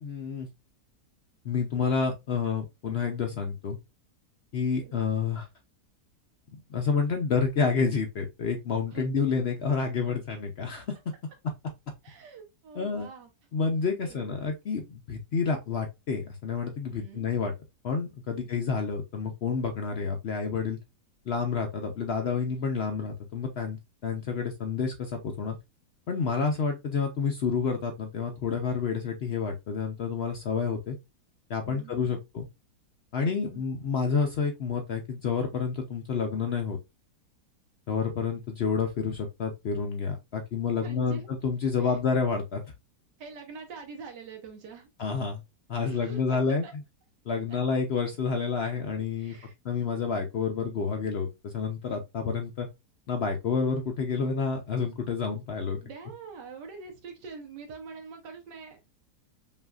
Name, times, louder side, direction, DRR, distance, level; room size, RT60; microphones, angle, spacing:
voice 1, 0.0-0.5 1.4-3.8 4.5-5.5 6.7-10.8 12.8-13.1 13.5-17.5 17.8-20.8 21.3-25.6 26.1-31.0 31.5-32.5 33.1-36.8 37.9-42.6 45.0-45.4 45.7-46.8 47.3-49.4 49.6-52.7 53.1-55.8, left 5 dB, 70° left, 0.6 m, -29 dB
voice 2, 12.0-13.3 14.0-14.3 16.9-17.3 18.3-18.5 31.6-32.2 33.2-33.7 40.7-41.3 41.8-42.0 43.2-44.9 45.8-46.4 46.6-46.7 47.5-47.6 49.2-49.6 53.1-53.3 55.8-59.0, right 5 dB, 85° right, 1.6 m, -45 dB
5.4 x 2.5 x 2.3 m
omnidirectional pair, 1.8 m